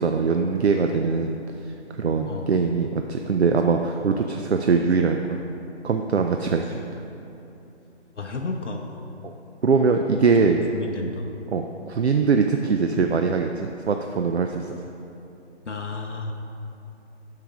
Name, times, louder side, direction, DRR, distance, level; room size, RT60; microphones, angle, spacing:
voice 1, 0.0-1.4 2.0-5.4 5.8-6.8 9.2-9.3 9.6-10.6 11.5-14.8, right 5 dB, 65° right, 5 dB, 0.5 m, -22 dB
voice 2, 8.2-8.9 10.4-11.3 15.6-16.3, left 3 dB, 75° left, 2 dB, 0.8 m, -32 dB
9.6 x 6.6 x 3.6 m, 2.8 s
figure-of-eight pair, 150°, 35 cm